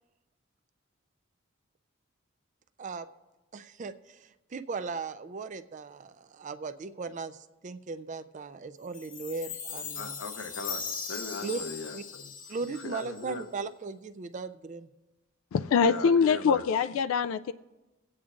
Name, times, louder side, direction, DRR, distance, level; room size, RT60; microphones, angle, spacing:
voice 1, 3.5-10.1 11.4-11.6 11.9-12.0 12.5-14.9, right 4 dB, 35° right, 0.4 m, -37 dB
Chime, 8.9-13.4, left 6 dB, 40° left, 0.7 m, -39 dB
voice 2, 9.9-13.5 15.8-16.6, left 3 dB, 70° left, 0.9 m, -39 dB
voice 3, 15.5-17.5, left 6 dB, 85° left, 0.3 m, -24 dB
23.0 x 8.6 x 2.5 m
head